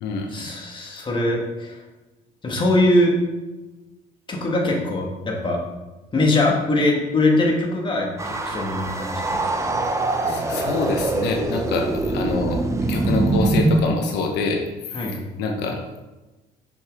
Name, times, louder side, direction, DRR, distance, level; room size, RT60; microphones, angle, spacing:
voice 1, 0.3-1.8 2.4-3.1 4.3-5.6 6.1-9.7 10.2-10.6 14.9-15.2, left 2 dB, 30° left, -1 dB, 1.6 m, -22 dB
sound 1, 8.2-13.9, right 2 dB, 15° right, 0.7 m, -23 dB
voice 2, 10.2-12.6 12.9-14.6 15.4-15.8, left 3 dB, 85° left, 2 dB, 1.0 m, -25 dB
6.3 x 6.2 x 3.6 m, 1.1 s
cardioid pair, 110°, 17 cm